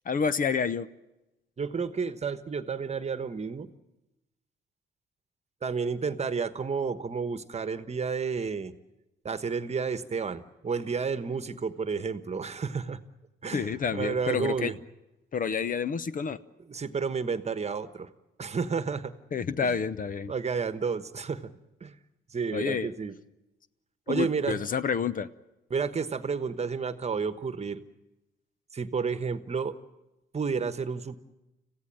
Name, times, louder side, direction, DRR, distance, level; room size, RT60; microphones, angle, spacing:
voice 1, 0.1-0.9 13.5-14.7 15.3-16.4 19.3-20.3 22.5-22.9 24.1-25.3, left 6 dB, 45° left, 15 dB, 0.8 m, -29 dB
voice 2, 1.6-3.7 5.6-8.7 9.2-13.0 13.4-14.8 16.7-18.1 18.4-19.1 19.6-19.8 20.3-21.5 21.8-21.9 22.3-23.1 24.1-24.6 25.7-27.8 28.7-29.8 30.3-31.2, right 5 dB, 35° right, 11 dB, 1.2 m, -31 dB
26.0 x 15.5 x 9.1 m, 1.0 s
cardioid pair, 90°, 20 cm